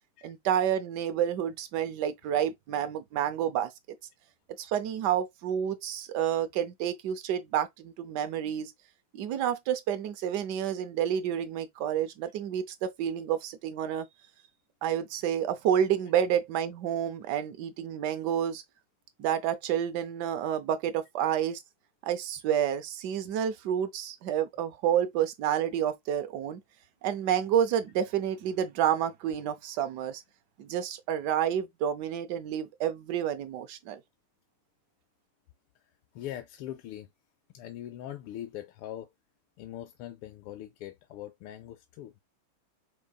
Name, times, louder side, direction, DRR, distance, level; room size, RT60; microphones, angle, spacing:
voice 1, 0.2-3.7 4.6-8.7 9.1-14.1 14.8-18.6 19.2-21.6 22.0-26.6 27.0-30.2 30.6-34.0, right 9 dB, 70° right, 1.0 m, -29 dB
voice 2, 36.1-37.1 37.5-39.1 39.6-42.1, left 12 dB, 80° left, 1.5 m, -41 dB
6.2 x 2.9 x 2.2 m
omnidirectional pair, 2.4 m